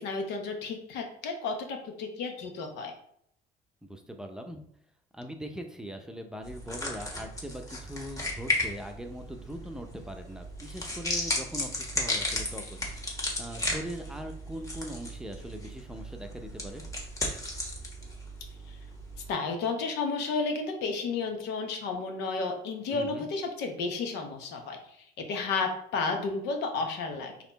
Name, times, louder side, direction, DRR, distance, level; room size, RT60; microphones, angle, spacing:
voice 1, 0.0-2.9 18.7-18.8 19.3-24.8 25.3-27.3, left 4 dB, 90° left, 4 dB, 0.9 m, -32 dB
voice 2, 3.8-4.6 5.1-16.8 22.9-23.3, equal, 5° right, 4 dB, 0.6 m, -41 dB
sound 1, 6.4-19.3, left 1 dB, 20° left, 1.3 m, -35 dB
4.2 x 3.0 x 4.0 m, 0.71 s
cardioid pair, 110°, 17 cm